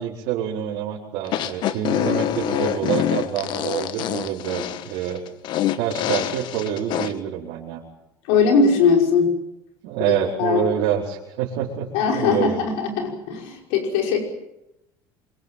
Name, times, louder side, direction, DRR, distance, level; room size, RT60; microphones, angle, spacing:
voice 1, 0.0-5.2 5.8-7.8 9.8-11.9 12.1-12.7, right 9 dB, 80° right, -5 dB, 4.9 m, -26 dB
sound 1, 1.2-7.1, left 12 dB, 60° left, 1.4 m, -25 dB
voice 2, 8.3-9.4 10.1-10.2 10.4-10.6 11.9-14.2, left 5 dB, 85° left, 2 dB, 5.6 m, -20 dB
25.5 x 22.5 x 7.6 m, 0.89 s
cardioid pair, 115°, 9 cm